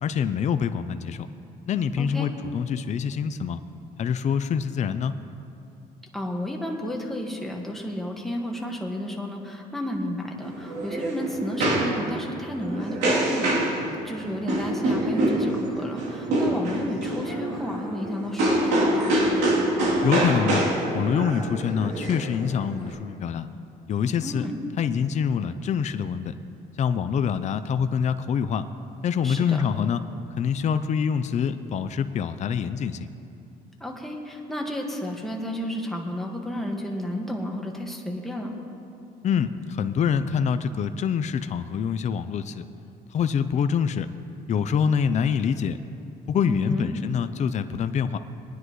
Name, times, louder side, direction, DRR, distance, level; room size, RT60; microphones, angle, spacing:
voice 1, 0.0-1.3 1.7-3.6 4.0-5.1 20.0-20.7 20.9-23.5 23.9-24.4 24.8-26.3 26.8-28.6 29.0-30.0 30.4-33.1 39.2-42.6 43.1-44.1 44.5-45.8 46.3-48.2, left 7 dB, 45° left, 11 dB, 0.5 m, -25 dB
voice 2, 2.0-2.3 6.1-13.8 14.0-19.3 24.2-24.6 29.2-29.6 33.8-38.5 46.5-46.9, left 1 dB, ahead, -1 dB, 1.7 m, -32 dB
sound 1, 10.4-22.9, right 1 dB, 85° right, 3.1 m, -26 dB
21.5 x 9.8 x 3.1 m, 2.6 s
cardioid pair, 110°, 17 cm